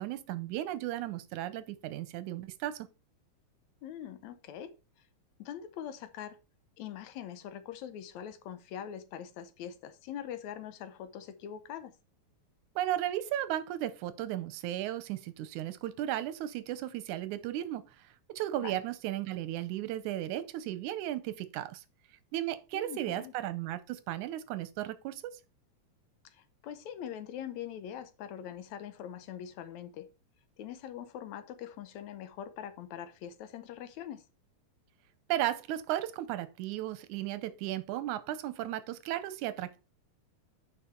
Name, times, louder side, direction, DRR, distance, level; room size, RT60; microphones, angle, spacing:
voice 1, 0.0-2.9 12.8-21.8 22.3-25.3 35.3-39.8, right 13 dB, 85° right, 2.2 m, -35 dB
voice 2, 3.8-4.7 5.4-6.4 6.8-11.9 18.6-18.8 22.7-23.3 26.2-30.1 30.6-34.3, left 9 dB, 75° left, 2.0 m, -43 dB
8.2 x 5.4 x 4.4 m
omnidirectional pair, 3.4 m